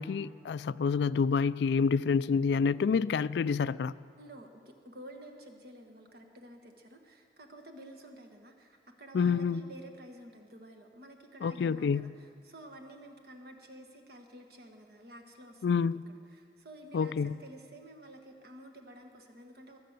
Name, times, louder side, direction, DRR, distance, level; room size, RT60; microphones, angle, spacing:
voice 1, 0.0-3.9 9.1-9.6 11.4-12.1 15.6-16.1 16.9-17.3, left 5 dB, 70° left, 0.3 m, -28 dB
voice 2, 4.2-19.8, right 1 dB, 60° right, 1.6 m, -51 dB
22.5 x 7.7 x 6.7 m
head